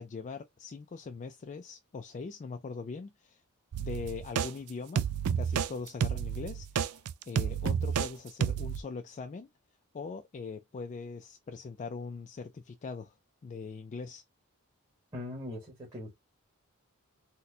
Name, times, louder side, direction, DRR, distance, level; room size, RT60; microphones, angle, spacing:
voice 1, 0.0-3.4 3.8-5.1 5.4-9.5 9.9-13.1 13.4-14.2, left 4 dB, 35° left, 0.3 m, -41 dB
sound 1, 3.7-4.5 4.9-5.7 6.0-8.1 8.4-8.8, right 7 dB, 80° right, 0.4 m, -30 dB
voice 2, 15.1-16.1, left 2 dB, 20° right, 1.3 m, -40 dB
4.1 x 2.2 x 2.6 m
head